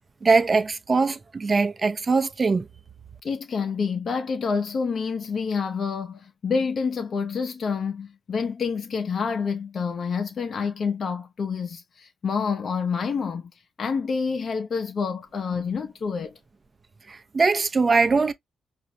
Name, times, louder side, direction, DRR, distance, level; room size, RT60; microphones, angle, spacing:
voice 1, 0.2-2.7 17.1-18.3, right 4 dB, 40° right, 0.7 m, -21 dB
voice 2, 3.2-13.5 13.8-16.4, left 5 dB, 55° left, 0.6 m, -28 dB
5.0 x 2.5 x 2.7 m
supercardioid pair, 50°, 0 cm